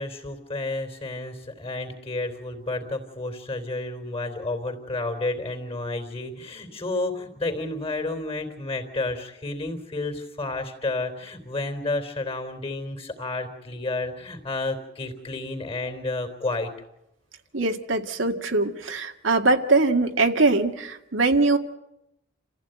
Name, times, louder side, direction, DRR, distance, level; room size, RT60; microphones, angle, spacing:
voice 1, 0.0-16.7, left 2 dB, 30° left, 6 dB, 3.5 m, -31 dB
voice 2, 17.5-21.6, right 3 dB, 75° right, 3 dB, 1.9 m, -22 dB
29.0 x 15.0 x 9.1 m, 0.89 s
head